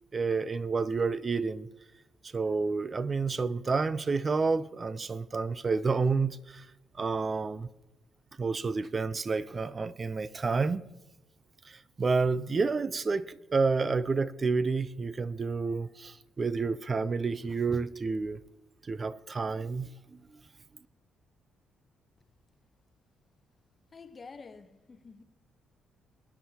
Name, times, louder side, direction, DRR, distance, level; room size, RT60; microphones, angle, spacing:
voice 1, 0.1-1.7 2.2-6.7 7.0-7.7 8.4-10.8 11.6-18.4 18.8-20.4, right 4 dB, 35° right, 0.5 m, -30 dB
voice 2, 23.9-25.2, left 4 dB, 35° left, 0.8 m, -48 dB
22.0 x 9.3 x 2.9 m
cardioid pair, 90°, 0 cm